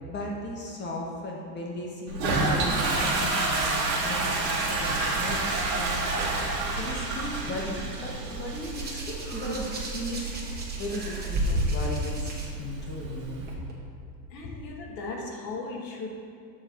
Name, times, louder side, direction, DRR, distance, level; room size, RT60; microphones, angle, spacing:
voice 1, 0.1-6.3 6.8-10.3 10.8-12.3 12.6-13.5, left 1 dB, 20° left, -1 dB, 0.9 m, -36 dB
Toilet flush, 2.1-13.5, right 3 dB, 85° right, 1.6 m, -30 dB
Hands, 8.5-12.5 13.5-13.7, equal, 20° right, 1.2 m, -31 dB
voice 2, 14.3-16.1, left 3 dB, 85° left, -1 dB, 1.6 m, -37 dB
7.2 x 4.3 x 4.4 m, 2.6 s
supercardioid pair, 120°, 50 cm